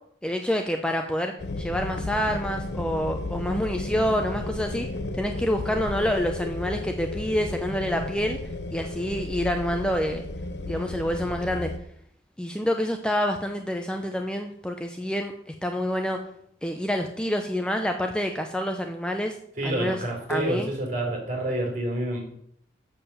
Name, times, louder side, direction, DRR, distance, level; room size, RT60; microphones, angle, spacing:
voice 1, 0.2-4.9 5.2-8.4 8.7-10.3 10.6-11.7 12.4-16.2 16.6-19.4 19.6-20.0 20.3-20.7, equal, 5° left, 4 dB, 0.6 m, -27 dB
sound 1, 1.4-11.8, left 2 dB, 65° left, 0.7 m, -33 dB
voice 2, 19.6-22.2, right 1 dB, 40° right, -1 dB, 4.0 m, -28 dB
7.3 x 6.7 x 6.9 m, 0.68 s
head